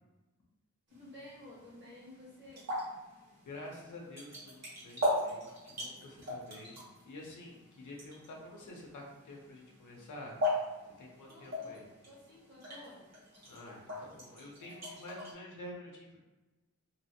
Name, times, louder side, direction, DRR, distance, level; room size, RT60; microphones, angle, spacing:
voice 1, 0.9-2.7 11.3-13.0, left 1 dB, 40° right, -7 dB, 1.3 m, -53 dB
sound 1, 0.9-15.3, left 1 dB, 60° right, 1.2 m, -40 dB
voice 2, 3.4-10.4 11.0-11.8 13.5-16.2, left 1 dB, 75° left, -1 dB, 0.7 m, -49 dB
2.9 x 2.0 x 2.8 m, 1.1 s
wide cardioid pair, 90°, 30 cm